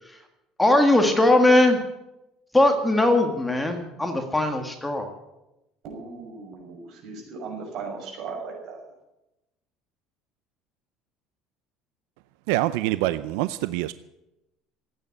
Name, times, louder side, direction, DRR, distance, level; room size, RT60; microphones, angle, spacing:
voice 1, 0.6-1.8 2.5-5.1, left 1 dB, 5° left, 5 dB, 1.8 m, -19 dB
voice 2, 5.8-8.8, right 4 dB, 50° right, 2 dB, 6.2 m, -37 dB
voice 3, 12.5-13.9, right 16 dB, 90° right, 14 dB, 0.5 m, -25 dB
15.5 x 9.3 x 9.7 m, 0.94 s
cardioid pair, 145°, 0 cm